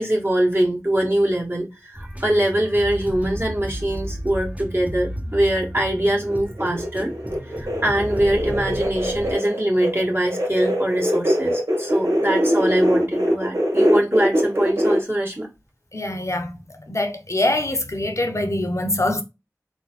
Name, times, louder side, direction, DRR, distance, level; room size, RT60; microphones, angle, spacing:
voice 1, 0.0-7.1 7.5-15.5, right 1 dB, 40° right, 1.9 m, -23 dB
sound 1, 1.9-9.3, equal, 25° right, 1.0 m, -33 dB
sound 2, 6.2-15.0, equal, 80° right, 1.5 m, -23 dB
voice 2, 15.9-16.6 16.9-19.2, left 1 dB, 55° left, 0.7 m, -24 dB
3.9 x 3.7 x 2.3 m
wide cardioid pair, 45°, 6 cm